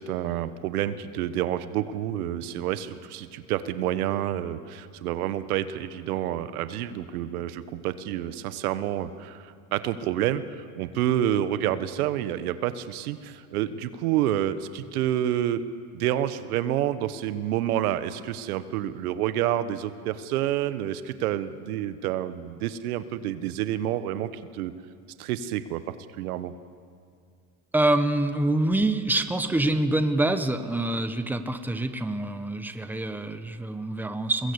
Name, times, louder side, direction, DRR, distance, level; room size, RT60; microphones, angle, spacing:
voice 1, 0.0-15.6 15.9-24.7 25.2-25.8 26.2-26.5, right 12 dB, 85° right, 12 dB, 1.2 m, -28 dB
voice 2, 27.7-34.5, right 1 dB, 5° right, 8 dB, 1.3 m, -26 dB
23.5 x 20.5 x 8.1 m, 2.2 s
supercardioid pair, 115°, 43 cm